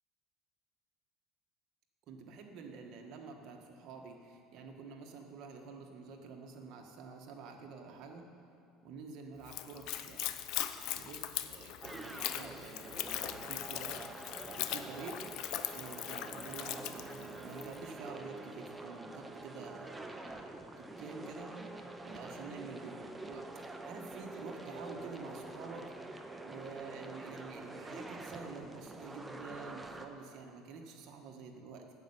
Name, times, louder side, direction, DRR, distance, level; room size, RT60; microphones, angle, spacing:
voice 1, 2.1-8.3 8.8-10.3 10.7-15.2 15.7-21.5 22.0-23.5 23.8-25.9 26.4-31.8, right 4 dB, 55° right, 2 dB, 1.5 m, -48 dB
Splash splatter / Trickle dribble, 9.4-17.8, left 13 dB, 65° left, 0.6 m, -40 dB
sound 1, 11.8-30.1, right 2 dB, 10° right, 0.8 m, -46 dB
9.1 x 7.8 x 8.7 m, 2.6 s
cardioid pair, 130°, 0 cm